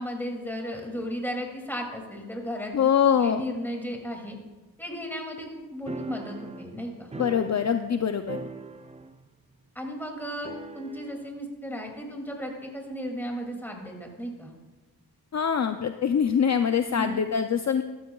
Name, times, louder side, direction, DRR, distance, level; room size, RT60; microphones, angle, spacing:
voice 1, 0.0-2.7 3.2-4.4 4.8-7.1 9.7-14.5 16.9-17.2, equal, 5° left, 1 dB, 2.6 m, -35 dB
voice 2, 2.7-3.4 7.2-8.4 15.3-17.8, left 7 dB, 45° left, 8 dB, 0.5 m, -24 dB
sound 1, 5.9-8.0 8.2-9.3 9.5-9.6 10.4-11.2, right 3 dB, 20° right, 0.4 m, -39 dB
13.5 x 13.0 x 2.4 m, 1.2 s
wide cardioid pair, 75°, 38 cm